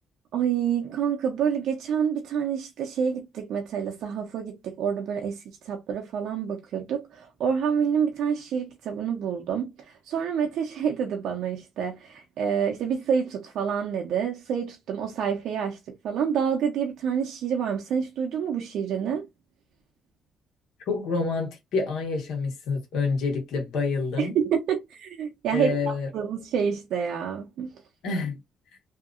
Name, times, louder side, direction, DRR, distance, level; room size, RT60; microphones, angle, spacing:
voice 1, 0.3-15.8 16.0-19.3 24.2-27.8, right 7 dB, 80° right, 0.7 m, -28 dB
voice 2, 20.9-24.4 25.5-26.1 28.0-28.4, left 4 dB, 80° left, 1.3 m, -27 dB
2.8 x 2.6 x 2.5 m
cardioid pair, 90°, 0 cm